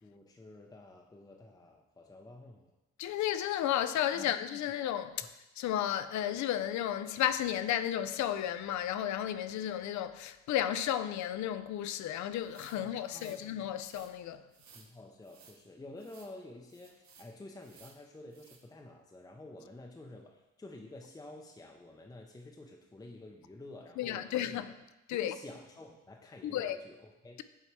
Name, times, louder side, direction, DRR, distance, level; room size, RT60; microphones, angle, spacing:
voice 1, 0.0-2.7 4.1-4.6 12.7-13.5 14.7-24.6 25.1-27.4, left 2 dB, 15° left, 0.5 m, -50 dB
voice 2, 3.0-5.3 5.6-14.4 24.0-24.7 25.1-25.3 26.4-26.8, left 11 dB, 70° left, 0.4 m, -33 dB
sound 1, 12.4-13.4 13.8-14.1 14.5-14.9 15.2-15.6 16.0-16.3 16.7-17.3 17.6-18.0 18.3-18.6, right 5 dB, 70° right, 1.0 m, -58 dB
7.3 x 2.8 x 4.6 m
cardioid pair, 90°, 30 cm